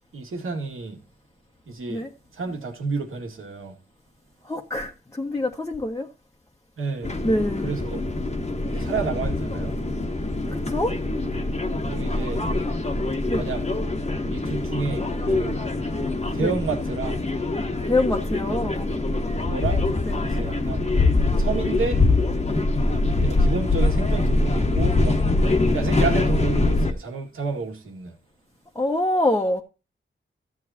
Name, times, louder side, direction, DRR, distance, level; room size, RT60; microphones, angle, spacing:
voice 1, 0.1-1.0 1.7-2.0 2.3-3.8 6.8-7.1 7.6-8.0 8.7-9.8 11.9-12.5 13.3-13.6 14.3-15.6 16.3-17.2 19.4-19.8 20.2-20.8 21.4-22.0 23.2-25.2 25.7-28.2, right 4 dB, 75° right, 2.4 m, -30 dB
voice 2, 4.4-6.1 7.2-7.8 10.5-10.9 13.3-13.5 16.4-16.5 17.9-18.9 20.0-20.2 22.5-22.7 25.5-26.0 28.7-29.6, left 1 dB, 15° left, 1.4 m, -25 dB
sound 1, 7.0-26.9, left 2 dB, 30° left, 1.5 m, -24 dB
14.0 x 8.1 x 2.9 m
cardioid pair, 80°, 21 cm